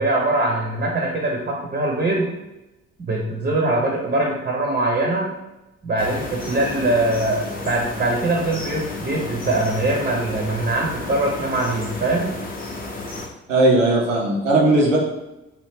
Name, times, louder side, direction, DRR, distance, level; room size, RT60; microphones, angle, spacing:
voice 1, 0.0-2.3 3.0-5.3 5.8-12.3, right 2 dB, 25° right, -1 dB, 0.7 m, -22 dB
sound 1, 6.0-13.3, left 2 dB, 25° left, 0.7 m, -32 dB
voice 2, 13.5-15.0, right 2 dB, 85° right, -2 dB, 0.7 m, -17 dB
3.0 x 2.5 x 3.3 m, 0.96 s
figure-of-eight pair, 45°, 36 cm